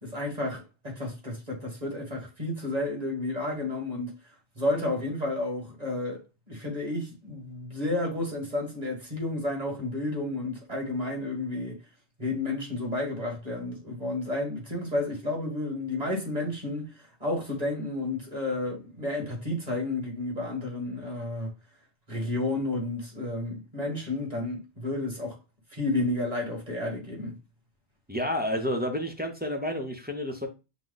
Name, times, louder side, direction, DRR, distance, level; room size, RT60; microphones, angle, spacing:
voice 1, 0.0-4.1 4.6-11.8 12.2-16.9 17.2-21.5 22.1-25.4 25.7-27.3, left 2 dB, 35° right, 1.8 m, -31 dB
voice 2, 28.1-30.5, left 1 dB, 10° right, 0.6 m, -30 dB
6.1 x 2.2 x 4.0 m
omnidirectional pair, 1.2 m